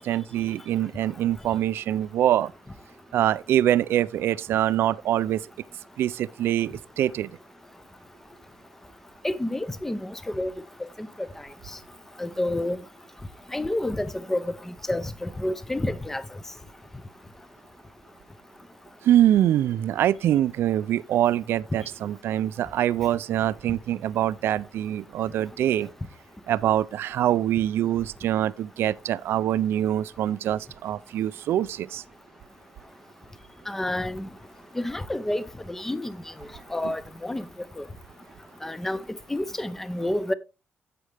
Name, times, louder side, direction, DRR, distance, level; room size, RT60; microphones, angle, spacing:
voice 1, 0.0-2.5 3.1-5.5 6.0-7.3 19.0-25.9 26.5-32.0, right 12 dB, 70° right, 0.5 m, -24 dB
voice 2, 9.2-10.5 10.8-11.3 12.2-12.8 13.5-16.2 33.7-34.3 34.8-36.2 36.7-37.4 37.8-37.9 38.6-39.0 39.3-40.3, left 1 dB, 10° left, 0.7 m, -29 dB
11.0 x 7.8 x 3.4 m
cardioid pair, 160°, 4 cm